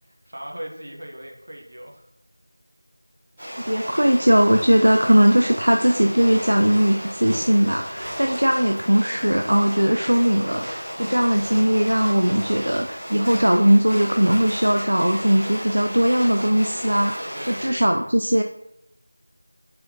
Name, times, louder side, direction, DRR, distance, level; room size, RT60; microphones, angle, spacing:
voice 1, 0.1-2.0 17.3-18.1, equal, 55° right, 1 dB, 0.8 m, -38 dB
sound 1, 3.4-17.7, equal, 5° right, 1.4 m, -34 dB
voice 2, 3.7-18.4, equal, 75° right, 4 dB, 0.3 m, -19 dB
4.3 x 3.6 x 2.7 m, 0.77 s
figure-of-eight pair, 175°, 0 cm